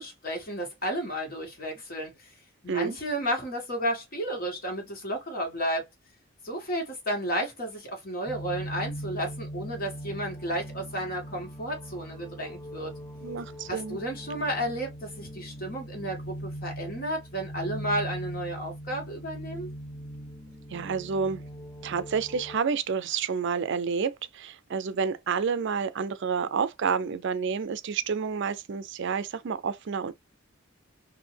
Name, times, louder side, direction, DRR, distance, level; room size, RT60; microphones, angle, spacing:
voice 1, 0.0-2.3 2.6-5.9 6.4-12.9 13.7-19.7, equal, 45° left, 1.8 m, -32 dB
sound 1, 8.3-22.6, right 1 dB, 15° left, 0.8 m, -40 dB
voice 2, 13.2-14.0 20.7-21.4 21.8-30.1, right 6 dB, 60° right, 0.5 m, -29 dB
4.0 x 2.7 x 3.3 m
head